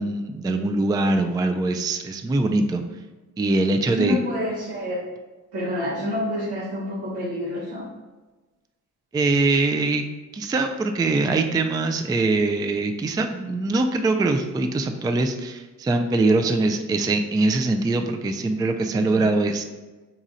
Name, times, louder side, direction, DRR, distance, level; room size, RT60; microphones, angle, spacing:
voice 1, 0.0-2.8 3.4-4.2 9.1-10.0 10.3-19.6, right 2 dB, 10° right, 6 dB, 0.3 m, -22 dB
voice 2, 4.0-5.0 5.5-7.8 18.9-19.0, left 1 dB, 80° right, -5 dB, 1.4 m, -28 dB
4.2 x 2.4 x 4.0 m, 1.2 s
supercardioid pair, 45°, 38 cm